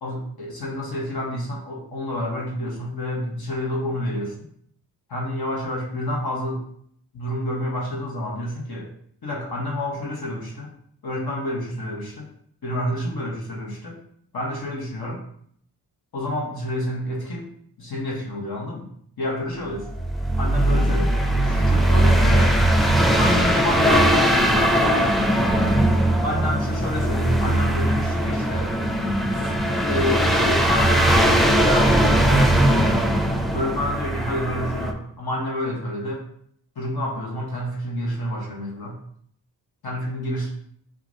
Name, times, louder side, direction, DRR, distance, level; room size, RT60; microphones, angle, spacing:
voice 1, 0.0-4.3 5.1-6.6 7.1-8.9 9.2-10.7 11.0-12.3 12.6-14.0 14.3-15.2 16.1-17.5 17.8-18.9 19.2-19.9 20.4-22.6 23.2-24.7 26.2-28.7 29.3-29.5 29.8-32.0 32.2-33.0 33.5-36.2 36.7-39.0 39.8-40.5, left 1 dB, 65° left, -3 dB, 1.2 m, -29 dB
sound 1, 19.7-34.9, right 1 dB, ahead, 0.5 m, -19 dB
5.7 x 2.5 x 2.6 m, 0.66 s
cardioid pair, 40°, 41 cm